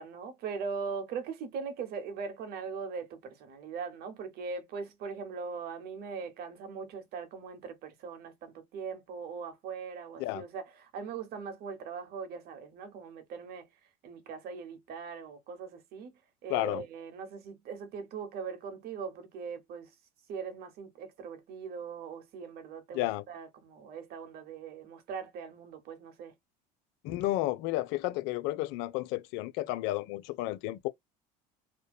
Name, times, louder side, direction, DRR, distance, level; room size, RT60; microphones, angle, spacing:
voice 1, 0.0-16.1 16.4-19.9 20.3-26.3, right 5 dB, 55° right, 0.9 m, -40 dB
voice 2, 16.5-16.8 22.9-23.2 27.0-30.9, left 16 dB, 70° left, 0.5 m, -32 dB
2.6 x 2.1 x 2.3 m
supercardioid pair, 85°, 19 cm